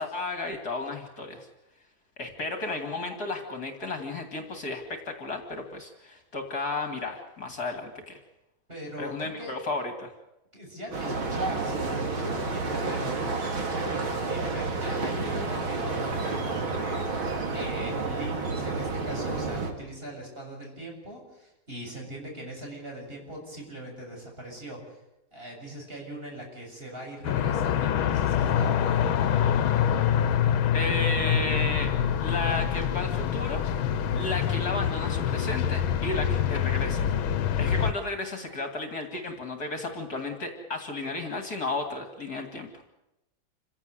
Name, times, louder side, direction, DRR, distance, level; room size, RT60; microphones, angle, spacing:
voice 1, 0.0-1.5 2.2-8.2 9.0-10.1 30.7-31.9 32.2-33.7 34.1-37.1 37.6-42.7, left 2 dB, 50° left, 5 dB, 2.9 m, -33 dB
voice 2, 8.7-9.5 10.5-25.0 25.3-29.0, right 1 dB, 25° right, 0 dB, 7.5 m, -40 dB
sound 1, 10.9-19.7, right 3 dB, 85° right, 3.5 m, -30 dB
sound 2, 27.2-37.9, left 9 dB, 85° left, 1.8 m, -25 dB
28.0 x 16.5 x 8.0 m, 0.91 s
omnidirectional pair, 2.2 m